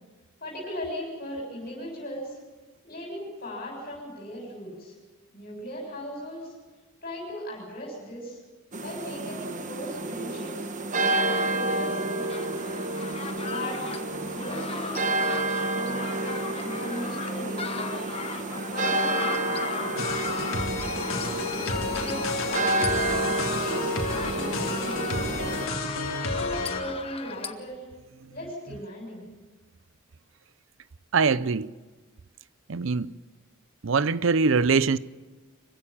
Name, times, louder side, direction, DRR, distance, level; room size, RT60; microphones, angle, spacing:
voice 1, 0.4-2.4 2.8-4.9 5.3-6.5 7.0-8.4 8.8-10.7 11.1-12.6 13.4-13.8 14.2-17.9 18.7-20.1 21.9-23.2 23.6-24.0 24.3-25.6 26.2-27.8 28.3-29.3, equal, 45° left, 7.0 m, -38 dB
sound 1, 8.7-25.7, right 2 dB, 40° right, 1.2 m, -30 dB
sound 2, 12.2-27.5, left 5 dB, 30° left, 1.2 m, -37 dB
sound 3, 20.0-26.8, left 3 dB, 85° left, 3.4 m, -31 dB
voice 2, 21.3-21.8 28.2-28.3 31.1-31.7 32.7-33.1 33.8-35.0, right 4 dB, 65° right, 0.6 m, -24 dB
25.0 x 16.0 x 8.8 m
head